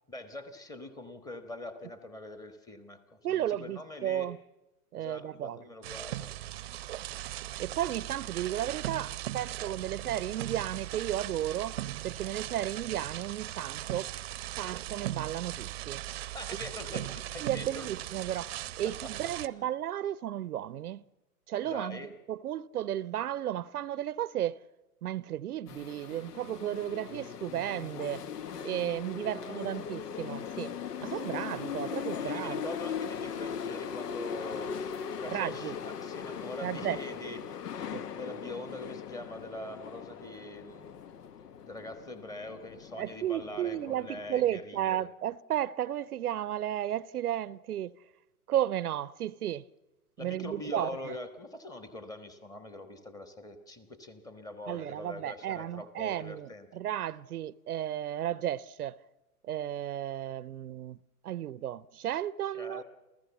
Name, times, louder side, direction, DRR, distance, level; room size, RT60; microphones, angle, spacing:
voice 1, 0.1-4.3 4.9-6.3 16.3-18.1 18.8-19.3 21.6-22.1 29.2-29.8 31.0-31.6 32.1-34.9 35.2-41.0 41.6-45.1 50.2-56.7 62.5-62.8, left 1 dB, 10° left, 1.3 m, -44 dB
voice 2, 3.2-4.4 4.9-5.6 7.5-11.8 12.0-14.1 14.6-16.0 17.4-18.5 18.8-21.0 21.5-22.0 22.3-24.6 25.0-28.2 28.6-30.7 31.0-32.6 35.3-35.8 36.6-37.0 37.9-38.0 43.0-47.9 48.5-49.6 50.2-51.1 54.7-59.0 59.4-61.0 61.2-62.8, right 11 dB, 75° right, 0.7 m, -33 dB
sound 1, 5.8-19.5, right 14 dB, 45° right, 0.7 m, -39 dB
sound 2, 25.7-44.3, left 7 dB, 85° left, 0.9 m, -39 dB
29.0 x 14.5 x 7.1 m
hypercardioid pair, 140°, 46 cm